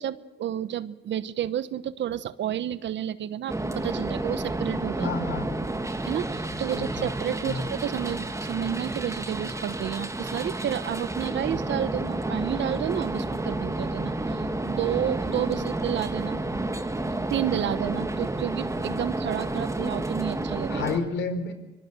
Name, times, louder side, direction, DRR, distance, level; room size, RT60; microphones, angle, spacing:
voice 1, 0.0-5.1 6.0-16.4 17.3-20.8, right 10 dB, 65° right, 15 dB, 1.1 m, -31 dB
sound 1, 3.5-21.0, right 2 dB, 15° right, 1.8 m, -30 dB
voice 2, 5.0-5.5 6.8-7.1 7.5-7.6 20.7-21.5, left 4 dB, 70° left, 9 dB, 3.9 m, -30 dB
24.0 x 22.5 x 6.7 m, 1.1 s
cardioid pair, 90°, 20 cm